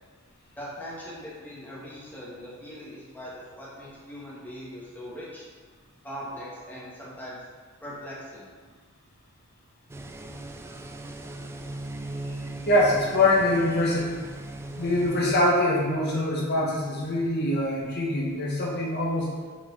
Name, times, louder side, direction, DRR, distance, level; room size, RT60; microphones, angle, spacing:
voice 1, 0.6-5.4 6.0-7.4 7.8-8.5, equal, 10° left, -7 dB, 1.6 m, -40 dB
sound 1, 9.9-15.4, right 1 dB, 10° right, 0.3 m, -38 dB
voice 2, 12.7-14.2 14.8-19.3, left 1 dB, 55° left, -4 dB, 1.3 m, -24 dB
5.8 x 4.5 x 3.9 m, 1.5 s
head